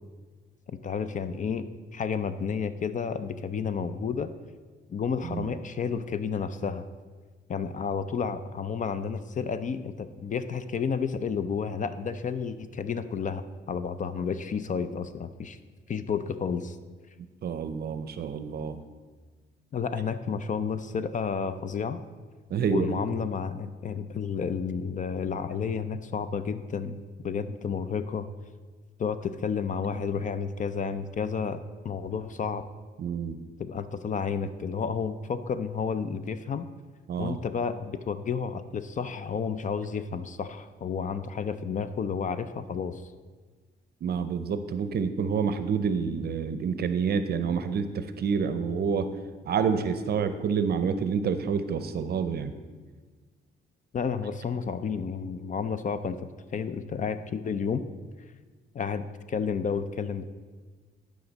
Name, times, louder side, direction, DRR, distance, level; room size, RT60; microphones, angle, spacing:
voice 1, 0.8-1.7 1.9-4.3 4.9-6.9 7.5-15.6 15.9-16.8 19.7-22.0 22.7-28.3 29.0-32.6 33.6-36.7 37.2-43.0 53.9-56.2 56.5-57.8 58.7-60.2, left 6 dB, 40° left, 12 dB, 0.5 m, -31 dB
voice 2, 5.2-5.6 17.4-18.8 22.5-22.9 33.0-33.4 37.1-37.4 44.0-49.1 49.5-52.5, right 6 dB, 55° right, 11 dB, 0.6 m, -28 dB
11.5 x 5.0 x 4.0 m, 1.4 s
cardioid pair, 90°, 20 cm